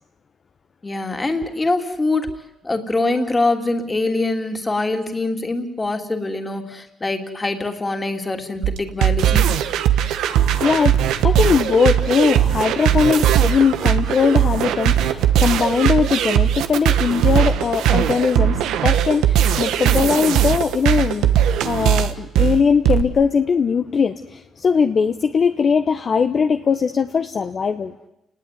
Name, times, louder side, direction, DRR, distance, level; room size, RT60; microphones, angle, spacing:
voice 1, 0.8-2.3 2.6-9.5, left 2 dB, 20° left, 3.1 m, -23 dB
sound 1, 8.6-23.0, right 10 dB, 85° right, 1.4 m, -18 dB
voice 2, 10.2-21.3 21.6-28.1, left 6 dB, 45° left, 1.1 m, -20 dB
30.0 x 19.5 x 9.4 m
cardioid pair, 90°, 0 cm